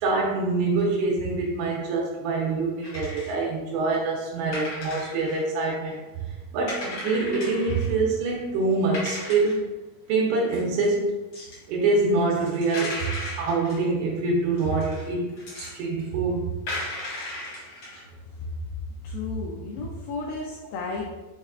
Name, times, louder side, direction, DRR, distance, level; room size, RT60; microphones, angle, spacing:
voice 1, 0.0-6.0 6.5-9.7 10.1-11.2 11.7-13.1 13.4-16.6, right 3 dB, 90° right, -3 dB, 2.7 m, -25 dB
sound 1, 2.8-3.4 4.2-4.3 4.5-5.9 6.2-6.3 6.6-7.9 8.4-8.5 8.9-9.6 10.5-10.9 11.3-12.0 12.3-13.8 14.5-15.8 16.1-16.2 16.7-18.1, left 2 dB, 65° left, 1.3 m, -36 dB
voice 2, 19.0-21.1, left 3 dB, 85° left, -2 dB, 2.0 m, -32 dB
6.6 x 2.4 x 2.4 m, 1.2 s
omnidirectional pair, 4.7 m